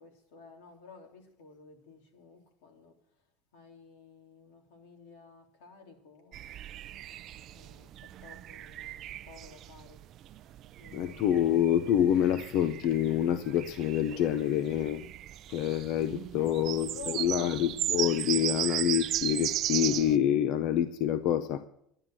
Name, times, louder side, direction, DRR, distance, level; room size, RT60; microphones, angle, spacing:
voice 1, 0.0-3.0 3.5-6.6 7.5-9.0 9.3-10.0 10.8-11.6 16.4-17.9 18.3-18.5, left 4 dB, 85° left, 2 dB, 3.4 m, -52 dB
sound 1, 6.3-20.2, right 13 dB, 35° right, 0.4 m, -36 dB
voice 2, 10.9-15.0 15.5-21.6, left 10 dB, 45° left, 12 dB, 0.6 m, -27 dB
11.0 x 11.0 x 7.4 m, 0.74 s
cardioid pair, 180°, 0 cm